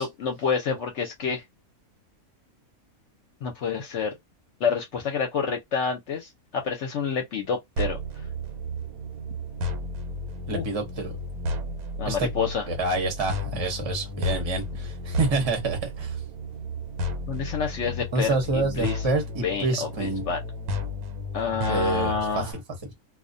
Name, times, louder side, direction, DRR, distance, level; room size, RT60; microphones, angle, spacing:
voice 1, 0.0-1.4 3.4-4.2 4.6-8.0 10.5-10.6 12.0-12.7 17.3-19.0 19.4-20.4 21.3-22.5, left 6 dB, 60° left, 0.8 m, -28 dB
sound 1, 7.8-22.5, equal, 90° right, 1.1 m, -33 dB
voice 2, 10.5-11.1 12.1-12.3 12.7-16.2 18.1-20.3 21.7-22.4, right 3 dB, 30° right, 0.6 m, -27 dB
2.4 x 2.1 x 2.5 m
omnidirectional pair, 1.5 m